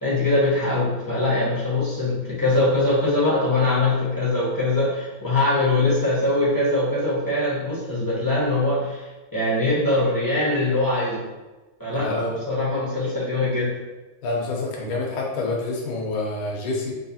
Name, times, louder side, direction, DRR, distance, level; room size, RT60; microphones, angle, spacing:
voice 1, 0.0-9.1 9.3-11.2 11.8-13.7, left 2 dB, 15° left, -9 dB, 0.9 m, -22 dB
voice 2, 11.9-12.4 14.2-16.9, left 3 dB, 75° left, -2 dB, 1.7 m, -27 dB
4.8 x 3.0 x 2.8 m, 1.1 s
omnidirectional pair, 2.4 m